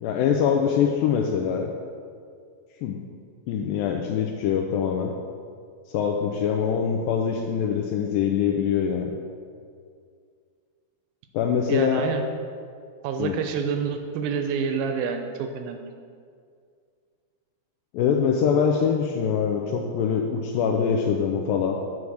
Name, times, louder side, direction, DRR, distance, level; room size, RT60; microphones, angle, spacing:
voice 1, 0.0-1.7 2.8-3.0 3.5-5.1 5.9-9.1 11.3-12.0 13.2-13.3 17.9-21.8, left 7 dB, 85° left, 2 dB, 2.0 m, -23 dB
voice 2, 11.7-12.2 13.0-15.9, right 6 dB, 80° right, 6 dB, 2.2 m, -28 dB
8.5 x 4.7 x 6.3 m, 2.2 s
omnidirectional pair, 4.6 m